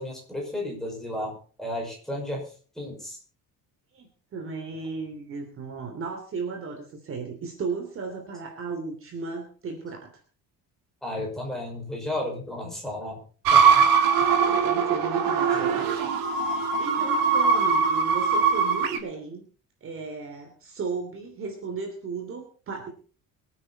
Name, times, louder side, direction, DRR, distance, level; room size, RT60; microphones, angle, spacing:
voice 1, 0.0-3.2 11.0-13.2 13.5-13.9 14.2-14.5, left 1 dB, ahead, -2 dB, 5.7 m, -34 dB
voice 2, 3.9-10.2 14.2-15.9 16.3-19.4 19.8-22.9, right 4 dB, 35° right, 4 dB, 3.0 m, -35 dB
sound 1, 13.4-19.0, right 6 dB, 65° right, 2.7 m, -21 dB
24.0 x 9.2 x 4.2 m, 0.40 s
cardioid pair, 175°, 36 cm